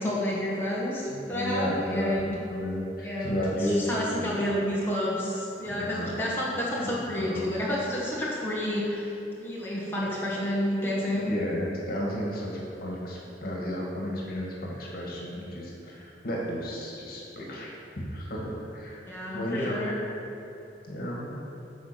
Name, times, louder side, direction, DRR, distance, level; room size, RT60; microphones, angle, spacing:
voice 1, 0.0-2.4 3.0-9.0 9.4-11.3 19.1-19.9, left 1 dB, 15° left, -7 dB, 1.6 m, -30 dB
voice 2, 1.1-4.4 5.7-6.1 6.8-7.5 11.1-17.7 18.0-19.0 19.3-19.8 20.9-21.4, equal, 55° left, -3 dB, 1.9 m, -33 dB
9.6 x 5.2 x 6.8 m, 2.9 s
head